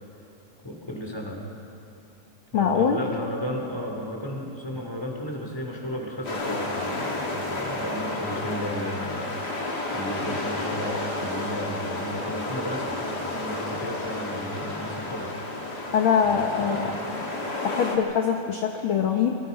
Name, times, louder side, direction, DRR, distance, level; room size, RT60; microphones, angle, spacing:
voice 1, 0.6-1.4 2.5-15.4 16.2-17.3, equal, 10° left, 0 dB, 3.4 m, -34 dB
voice 2, 2.5-3.0 15.9-16.8 17.6-19.4, left 7 dB, 55° left, 3 dB, 1.6 m, -23 dB
sound 1, 6.2-18.0, left 2 dB, 35° left, 2.7 m, -31 dB
27.0 x 25.0 x 5.5 m, 2.7 s
omnidirectional pair, 3.6 m